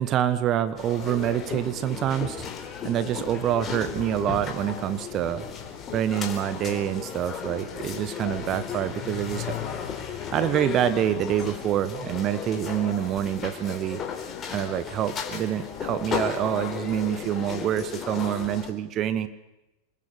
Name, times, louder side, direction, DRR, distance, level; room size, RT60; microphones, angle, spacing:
voice 1, 0.0-2.4 2.8-5.4 5.9-9.6 10.1-14.0 14.5-19.3, right 11 dB, 35° right, 13 dB, 1.3 m, -26 dB
sound 1, 0.8-18.7, left 7 dB, 25° left, 4.2 m, -35 dB
26.0 x 21.0 x 8.6 m, 0.97 s
figure-of-eight pair, 90°, 0 cm